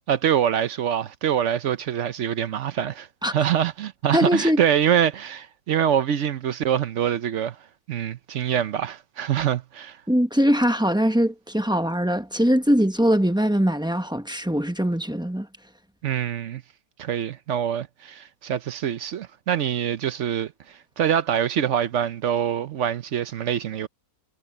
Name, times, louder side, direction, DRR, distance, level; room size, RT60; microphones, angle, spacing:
voice 1, 0.1-7.5 7.9-10.0 16.0-16.6 17.0-20.5 21.0-23.9, right 9 dB, 65° right, 0.7 m, -25 dB
voice 2, 4.1-4.6 10.1-15.5, equal, 5° right, 0.6 m, -21 dB
omnidirectional pair, 2.0 m